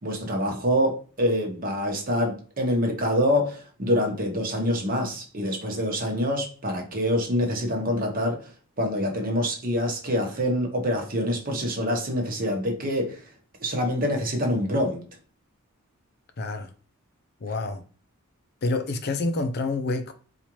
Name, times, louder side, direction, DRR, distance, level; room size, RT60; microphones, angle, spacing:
voice 1, 0.0-8.4 8.8-13.2 13.6-15.0, equal, 45° right, 1.0 m, -26 dB
voice 2, 16.4-16.7 17.4-17.8 18.6-20.1, left 2 dB, 50° left, 0.5 m, -27 dB
4.2 x 2.5 x 3.0 m
head